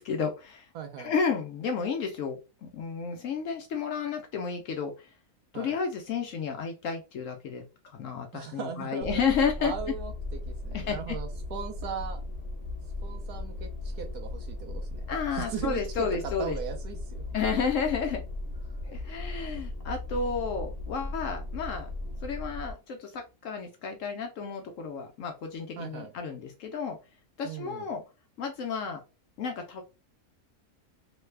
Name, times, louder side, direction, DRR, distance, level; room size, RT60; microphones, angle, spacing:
voice 1, 0.0-0.7 1.0-4.9 5.5-9.7 10.7-11.2 15.1-16.6 17.3-18.2 18.8-21.9 22.2-27.0 27.4-28.0 28.4-29.0 29.4-29.8, left 5 dB, 70° left, 4 dB, 0.8 m, -32 dB
voice 2, 0.7-1.1 5.5-5.8 8.3-9.2 9.6-12.2 13.0-15.0 15.3-17.2 25.8-26.1 27.4-27.9, right 7 dB, 80° right, 4 dB, 1.1 m, -38 dB
sound 1, 9.0-22.7, left 2 dB, 35° left, 0.7 m, -37 dB
3.1 x 2.1 x 3.2 m, 0.30 s
omnidirectional pair, 1.7 m